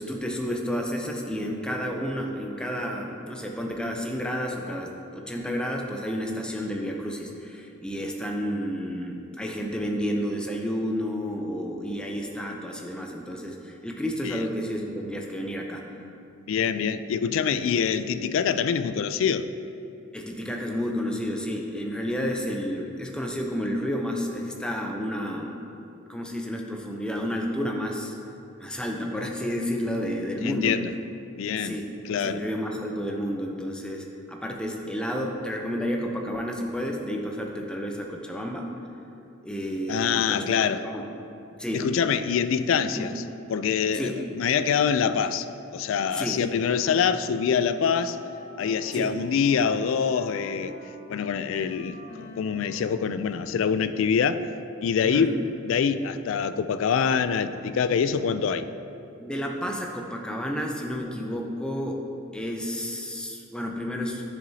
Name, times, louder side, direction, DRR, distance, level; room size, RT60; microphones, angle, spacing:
voice 1, 0.0-15.8 20.1-25.6 26.1-28.1 28.6-30.8 31.6-31.9 32.2-38.7 39.4-40.5 40.8-41.1 41.6-41.9 42.9-43.1 43.9-44.2 46.1-46.4 48.9-49.1 55.0-55.3 59.2-62.0 62.3-64.2, equal, 5° left, 1 dB, 0.5 m, -31 dB
voice 2, 16.5-19.5 30.4-30.9 31.4-31.8 32.1-32.4 39.9-40.8 41.7-43.2 43.5-45.5 45.7-48.2 48.6-50.8 51.1-54.4 54.8-55.3 55.6-58.7, left 7 dB, 75° left, 12 dB, 0.3 m, -25 dB
Wind instrument woodwind instrument, 46.1-53.6, left 1 dB, 35° left, 0.8 m, -47 dB
10.0 x 6.9 x 2.8 m, 2.8 s
head